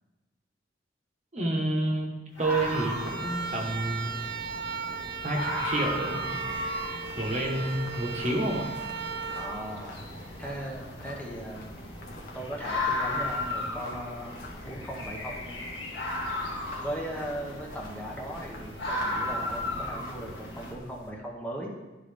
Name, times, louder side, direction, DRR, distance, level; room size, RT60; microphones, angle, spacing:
voice 1, 1.3-4.2 5.2-6.5 7.2-8.7, right 1 dB, 40° right, 0 dB, 1.0 m, -29 dB
sound 1, 2.4-20.7, left 1 dB, 80° left, 1.4 m, -36 dB
sound 2, 2.4-10.5, right 5 dB, 60° right, 0.5 m, -37 dB
sound 3, 6.2-21.1, left 2 dB, 50° left, 1.0 m, -48 dB
voice 2, 9.4-10.0 10.4-11.7 12.3-14.4 14.6-15.6 16.8-21.7, equal, 10° left, -2 dB, 0.8 m, -38 dB
11.0 x 3.8 x 3.4 m, 1.1 s
head